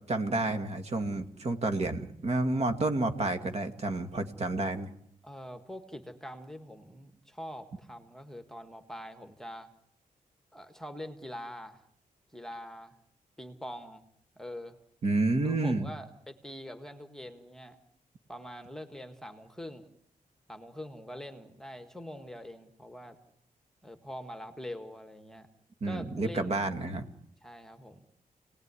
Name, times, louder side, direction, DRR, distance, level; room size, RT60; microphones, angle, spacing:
voice 1, 0.1-4.9 15.0-15.9 25.8-27.0, right 2 dB, 45° right, 8 dB, 2.1 m, -30 dB
voice 2, 5.2-9.7 10.5-11.8 12.3-13.0 13.4-14.0 14.4-14.8 15.4-17.8 18.3-19.9 20.5-23.2 23.8-25.5 25.8-26.6 27.4-28.0, equal, 5° left, 8 dB, 1.7 m, -44 dB
29.5 x 19.0 x 9.8 m, 0.75 s
wide cardioid pair, 170°, 15 cm